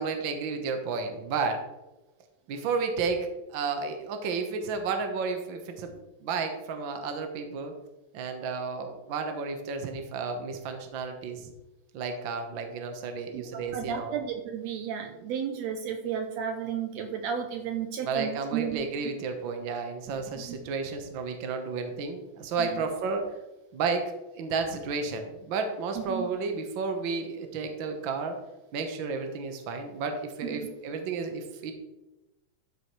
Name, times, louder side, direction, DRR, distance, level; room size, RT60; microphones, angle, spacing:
voice 1, 0.0-1.6 2.5-7.7 8.1-11.5 11.9-14.1 18.0-23.3 23.7-24.0 24.4-28.4 28.7-31.7, right 4 dB, 55° right, 6 dB, 1.5 m, -32 dB
voice 2, 13.7-18.8 20.5-20.6 22.6-22.8 26.0-26.3, right 8 dB, 75° right, 5 dB, 1.8 m, -33 dB
13.0 x 4.9 x 4.7 m, 1.0 s
omnidirectional pair, 3.3 m